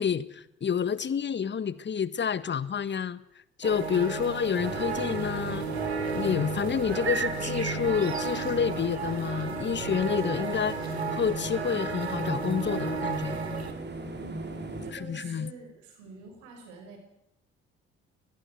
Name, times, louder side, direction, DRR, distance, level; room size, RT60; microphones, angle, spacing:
voice 1, 0.0-3.2 3.6-5.7 6.1-10.8 11.1-13.4 14.9-15.5, left 7 dB, 35° left, 17 dB, 1.5 m, -29 dB
sound 1, 3.6-13.7, right 4 dB, 90° right, 1.6 m, -33 dB
sound 2, 4.0-12.5, left 7 dB, 75° left, 7.3 m, -49 dB
sound 3, 4.6-14.9, right 2 dB, 35° right, 4.5 m, -38 dB
voice 2, 14.1-17.0, right 4 dB, 70° right, 5 dB, 6.1 m, -47 dB
24.0 x 19.5 x 8.0 m, 0.76 s
figure-of-eight pair, 45°, 31 cm